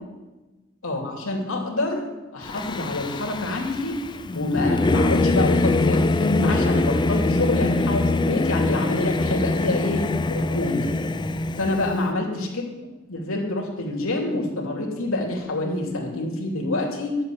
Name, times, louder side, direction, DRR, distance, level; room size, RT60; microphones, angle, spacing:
voice 1, 0.8-4.0 4.3-10.9 11.6-12.6 13.1-17.2, left 2 dB, 80° left, 0 dB, 2.8 m, -26 dB
Singing / Musical instrument, 2.5-12.0, left 2 dB, 20° left, 0.4 m, -23 dB
11.0 x 7.6 x 8.6 m, 1.2 s
head